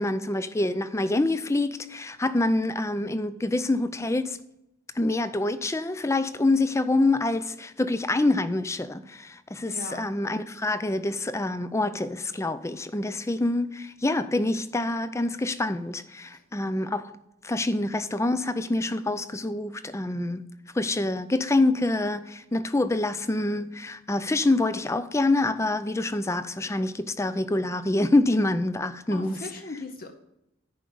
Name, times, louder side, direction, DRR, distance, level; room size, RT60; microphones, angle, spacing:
voice 1, 0.0-4.4 5.0-17.1 17.4-20.4 20.7-29.4, left 2 dB, 15° left, 0.5 m, -26 dB
voice 2, 9.6-10.1 16.2-16.4 29.1-30.1, left 2 dB, 45° left, 0.8 m, -39 dB
10.0 x 5.1 x 7.0 m
head